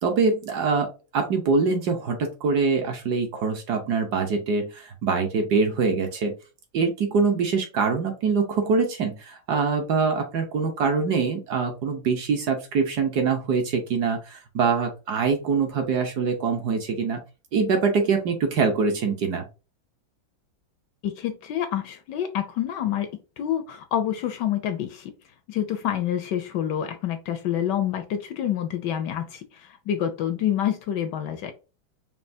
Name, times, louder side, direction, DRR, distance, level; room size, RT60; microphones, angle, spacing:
voice 1, 0.0-6.3 6.7-17.2 17.5-19.5, right 5 dB, 60° right, 4 dB, 1.2 m, -24 dB
voice 2, 21.0-25.1 25.5-31.5, left 10 dB, 70° left, 8 dB, 1.1 m, -27 dB
5.5 x 2.7 x 2.7 m, 0.31 s
omnidirectional pair, 2.2 m